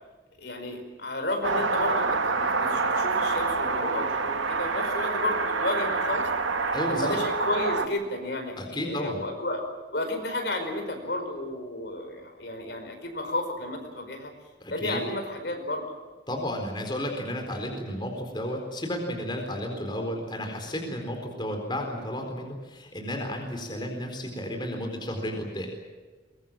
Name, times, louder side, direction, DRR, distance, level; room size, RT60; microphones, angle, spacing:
voice 1, 0.4-6.3 6.9-9.6 9.9-14.3 14.7-15.8, left 1 dB, 60° left, 5 dB, 5.0 m, -32 dB
sound 1, 1.4-7.9, right 4 dB, 85° right, 2.0 m, -27 dB
voice 2, 6.7-7.1 8.6-9.2 14.6-15.0 16.3-25.7, equal, 25° left, 2 dB, 4.2 m, -32 dB
23.5 x 23.0 x 7.5 m, 1.4 s
head